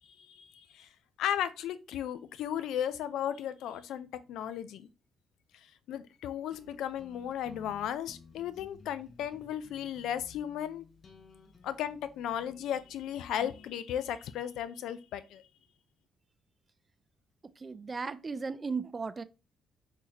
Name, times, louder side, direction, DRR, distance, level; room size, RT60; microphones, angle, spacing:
voice 1, 0.2-0.9 1.2-4.9 5.9-10.8 11.6-15.4, left 10 dB, 85° left, 0.3 m, -35 dB
sound 1, 6.5-13.7, left 4 dB, 50° left, 0.7 m, -56 dB
voice 2, 17.6-19.2, right 4 dB, 30° right, 0.3 m, -36 dB
4.0 x 2.7 x 2.8 m
cardioid pair, 90°, 0 cm